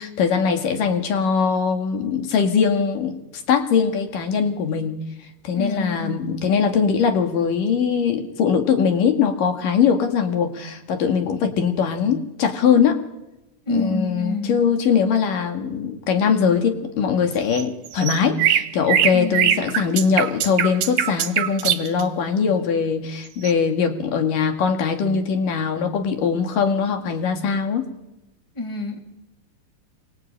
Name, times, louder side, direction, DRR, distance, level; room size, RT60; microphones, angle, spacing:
voice 1, 0.0-5.0 5.4-13.0 13.7-27.8, left 6 dB, 80° left, 5 dB, 3.7 m, -21 dB
voice 2, 5.5-6.2 13.7-14.6 19.1-19.5 28.6-29.0, left 2 dB, 10° left, 4 dB, 2.8 m, -27 dB
sound 1, 17.5-22.0 23.4-23.5, right 10 dB, 70° right, 2.5 m, -21 dB
26.5 x 24.5 x 8.8 m, 0.95 s
omnidirectional pair, 3.8 m